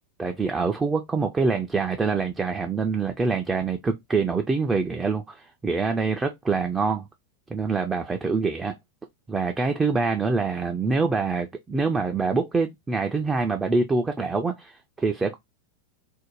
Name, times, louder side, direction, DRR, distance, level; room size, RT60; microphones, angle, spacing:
voice 1, 0.2-7.1 7.5-8.7 9.3-15.4, right 4 dB, 15° right, 0.3 m, -25 dB
2.5 x 2.0 x 2.9 m
figure-of-eight pair, 90°, 0 cm